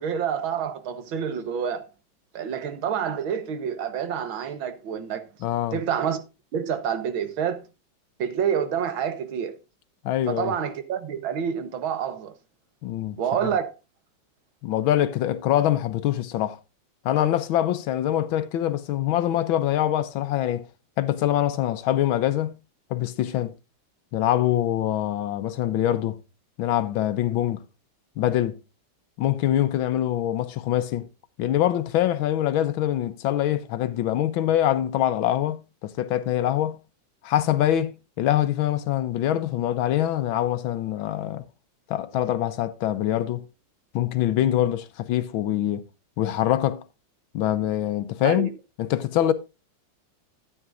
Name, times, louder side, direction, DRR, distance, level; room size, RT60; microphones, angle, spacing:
voice 1, 0.0-1.8 2.3-5.2 5.7-6.2 6.5-7.7 8.2-9.5 10.3-12.3 13.2-13.7 48.2-48.5, right 8 dB, 85° right, 1.9 m, -28 dB
voice 2, 5.4-5.8 10.0-10.5 12.8-13.2 14.6-16.6 17.0-20.6 21.0-22.6 22.9-23.5 24.1-26.2 26.6-27.6 28.2-28.6 29.2-31.1 31.4-36.8 37.2-41.4 41.9-43.4 43.9-45.8 46.2-46.8 47.3-48.5 48.8-49.3, left 12 dB, 85° left, 1.5 m, -24 dB
12.5 x 9.0 x 2.5 m
omnidirectional pair, 2.2 m